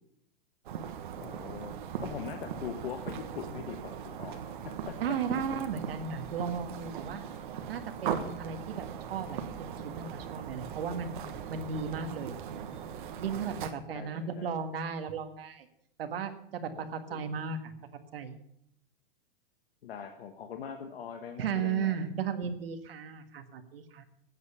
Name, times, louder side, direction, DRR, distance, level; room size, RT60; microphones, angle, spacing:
sound 1, 0.6-13.7, right 8 dB, 55° right, 1.4 m, -39 dB
voice 1, 1.2-1.7 2.0-4.7 5.0-5.4 13.9-14.5 16.7-17.3 19.8-22.0, left 7 dB, 80° left, 5 dB, 1.5 m, -42 dB
voice 2, 5.0-7.2 7.7-11.2 11.5-12.8 13.2-15.7 16.0-17.7 18.1-18.4 21.4-24.0, right 6 dB, 75° right, 7 dB, 1.7 m, -35 dB
14.5 x 9.3 x 7.0 m, 0.75 s
supercardioid pair, 175°, 29 cm